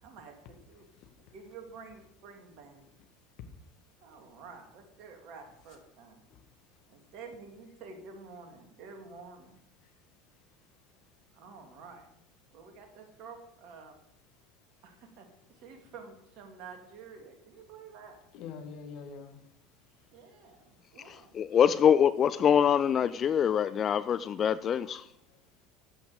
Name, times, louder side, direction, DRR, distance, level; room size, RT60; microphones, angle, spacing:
voice 1, 0.0-0.8 1.2-2.9 4.0-6.2 6.9-9.6 11.3-12.0 12.5-14.0 14.8-15.3 15.5-18.2 20.1-21.4, right 5 dB, 55° right, 2.8 m, -49 dB
voice 2, 1.0-1.3 6.3-6.5 9.8-9.9 18.3-19.4 20.8-20.9 23.6-23.7 25.3-25.4, left 5 dB, 55° left, 1.8 m, -46 dB
voice 3, 21.0-25.1, left 8 dB, 35° left, 0.4 m, -25 dB
12.5 x 9.3 x 5.1 m
figure-of-eight pair, 70°, 0 cm